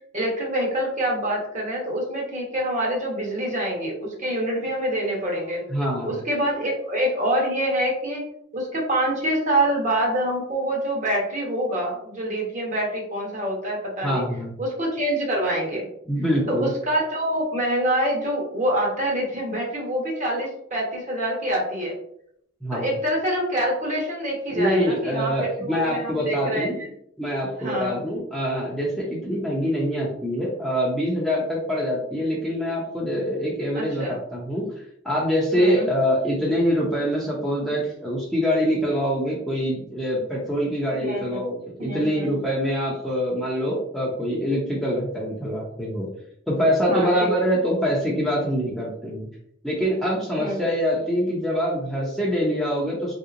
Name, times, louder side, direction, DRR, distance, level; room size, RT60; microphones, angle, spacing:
voice 1, 0.1-5.6 6.0-8.2 8.5-14.2 14.6-15.9 16.5-21.9 22.7-26.9 27.6-28.0 33.7-34.2 35.5-35.9 41.0-41.4 41.8-42.3 46.9-47.3 50.4-50.6, right 1 dB, 40° right, -2 dB, 1.0 m, -26 dB
voice 2, 5.7-6.1 14.0-14.5 16.1-16.7 22.6-22.9 24.5-26.8 27.2-34.6 35.0-46.1 46.5-49.3 49.6-53.1, equal, ahead, -5 dB, 0.6 m, -24 dB
3.6 x 2.8 x 2.5 m, 0.70 s
head